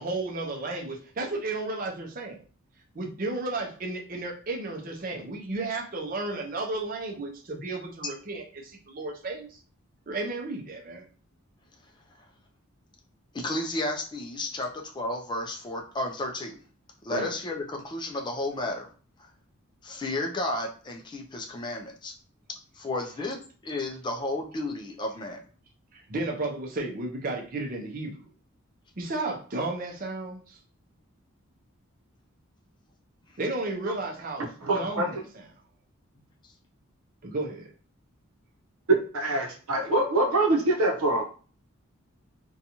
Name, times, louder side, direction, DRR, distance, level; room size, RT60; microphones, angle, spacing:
voice 1, 0.0-2.4 2.9-9.6 10.1-11.1 17.1-17.3 25.9-28.1 29.0-30.6 33.4-35.5 37.2-37.7, right 2 dB, 40° right, 2 dB, 0.5 m, -33 dB
voice 2, 13.3-16.6 17.0-18.9 19.8-22.1 22.7-23.4 23.6-25.4, left 2 dB, 20° left, 2 dB, 0.3 m, -32 dB
voice 3, 34.6-35.1 39.1-41.2, right 2 dB, 80° right, 2 dB, 0.7 m, -24 dB
2.6 x 2.3 x 2.8 m, 0.40 s
head